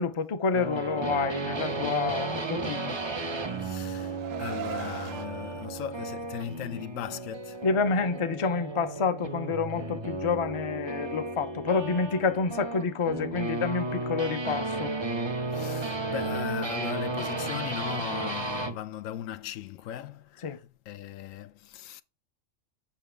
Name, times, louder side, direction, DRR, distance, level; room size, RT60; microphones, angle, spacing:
voice 1, 0.0-3.0 7.6-15.0 20.4-20.6, left 5 dB, 40° left, 0.4 m, -28 dB
sound 1, 0.5-18.8, right 3 dB, 35° right, 0.5 m, -34 dB
Car, 2.8-5.3, right 10 dB, 85° right, 1.0 m, -40 dB
voice 2, 3.6-7.6 15.5-22.0, left 11 dB, 85° left, 1.0 m, -38 dB
7.3 x 5.9 x 3.3 m
omnidirectional pair, 1.3 m